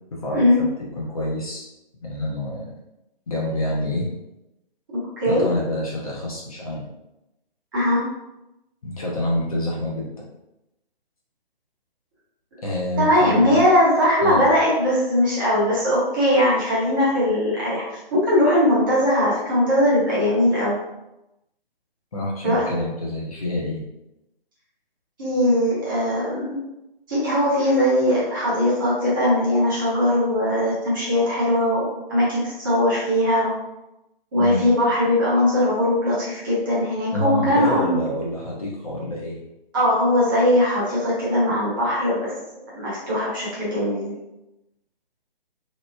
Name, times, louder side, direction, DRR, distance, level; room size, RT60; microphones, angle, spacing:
voice 1, 0.1-0.7 1.0-1.7 2.0-2.7 3.3-4.1 5.3-6.9 8.8-10.3 12.6-13.6 14.2-14.5 22.1-23.8 34.4-34.6 37.1-39.4, left 1 dB, 35° left, -4 dB, 0.6 m, -27 dB
voice 2, 13.0-20.8 22.4-22.7 25.2-26.6 27.1-33.5 34.3-37.9 39.7-42.3 42.7-44.2, left 1 dB, 20° right, -7 dB, 0.8 m, -20 dB
3.0 x 2.0 x 3.2 m, 0.91 s
figure-of-eight pair, 140°, 30 cm